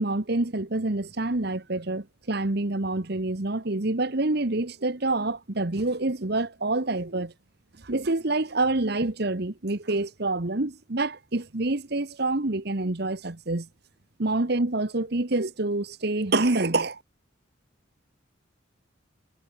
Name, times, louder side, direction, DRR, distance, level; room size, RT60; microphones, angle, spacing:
voice 1, 0.0-7.3 7.8-13.7 14.2-17.0, right 2 dB, 50° right, 1.3 m, -27 dB
head